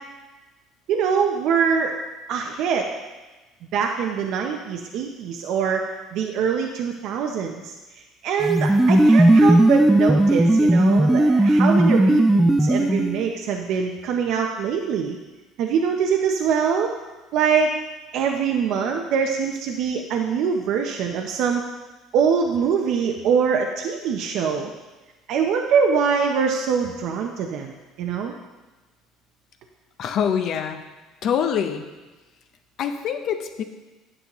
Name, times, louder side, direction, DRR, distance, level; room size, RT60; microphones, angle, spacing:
voice 1, 0.9-1.9 2.3-2.9 3.7-7.7 8.2-15.2 15.6-16.9 17.3-17.7 18.1-21.6 22.1-24.7 25.3-27.7 28.0-28.3, right 6 dB, 60° right, 3 dB, 0.6 m, -23 dB
sound 1, 8.4-13.3, right 1 dB, 5° right, 0.3 m, -16 dB
voice 2, 30.0-30.8 31.2-31.9 32.8-33.6, left 8 dB, 55° left, 7 dB, 0.6 m, -24 dB
9.7 x 6.8 x 3.0 m, 1.2 s
cardioid pair, 135°, 0 cm